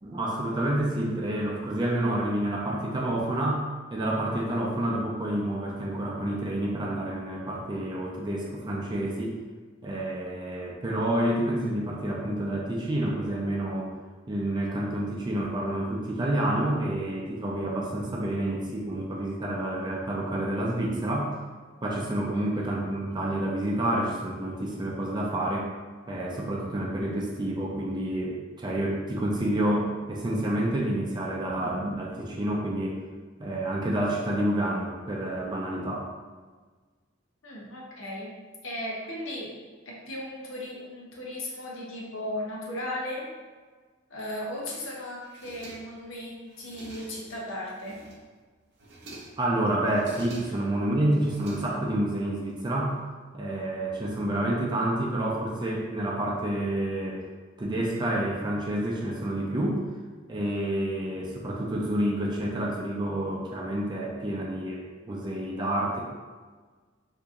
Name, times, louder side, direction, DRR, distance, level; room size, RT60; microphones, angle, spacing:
voice 1, 0.0-3.6 3.9-9.4 9.8-13.9 14.3-21.3 21.8-25.7 26.1-33.0 33.4-36.1 49.4-53.0 53.3-57.2 57.6-59.8 60.3-66.0, right 1 dB, 25° right, -3 dB, 0.4 m, -29 dB
voice 2, 22.3-22.6 37.4-38.3 38.6-39.5 39.9-43.3 44.1-48.0, left 1 dB, 85° left, -3 dB, 0.8 m, -36 dB
sound 1, 45.2-46.1 46.5-47.4 47.7-48.4 48.7-49.5 49.9-50.7 51.1-52.1, right 2 dB, 60° right, 0.6 m, -47 dB
2.9 x 2.6 x 3.6 m, 1.4 s
head